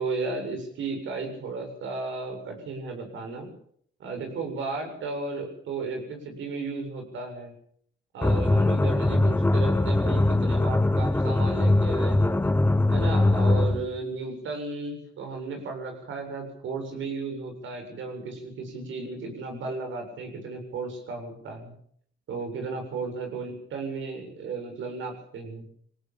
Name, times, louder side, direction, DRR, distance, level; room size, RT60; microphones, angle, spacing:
voice 1, 0.0-3.5 4.0-7.5 8.1-12.4 12.9-21.7 22.3-25.7, right 3 dB, 75° right, 4 dB, 7.5 m, -34 dB
sound 1, 8.2-13.9, left 2 dB, 10° left, 0.9 m, -22 dB
21.0 x 18.0 x 7.4 m, 0.64 s
cardioid pair, 90°, 20 cm